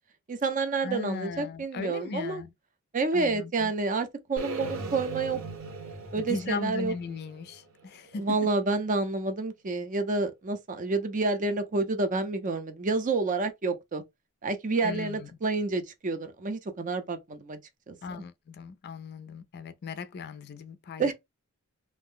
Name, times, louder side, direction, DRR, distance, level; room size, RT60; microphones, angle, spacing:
voice 1, 0.3-2.4 2.9-5.4 6.1-6.9 8.2-14.0 14.4-17.6 17.9-18.0 21.0-21.1, right 3 dB, 35° right, 0.5 m, -29 dB
voice 2, 0.8-2.5 3.1-3.7 6.2-8.4 14.8-15.3 18.0-21.1, left 4 dB, 50° left, 0.4 m, -37 dB
sound 1, 4.4-8.4, right 2 dB, 70° right, 0.9 m, -39 dB
2.6 x 2.0 x 3.6 m
head